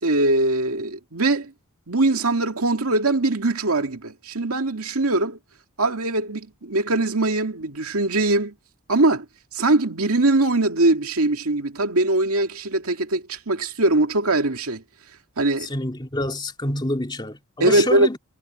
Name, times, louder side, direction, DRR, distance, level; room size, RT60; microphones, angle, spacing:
voice 1, 0.0-1.5 1.9-5.4 5.8-8.5 8.9-9.3 9.5-14.8 15.4-15.7 17.6-18.1, right 2 dB, 80° right, 2.2 m, -21 dB
voice 2, 15.6-18.2, left 1 dB, 20° left, 2.6 m, -27 dB
head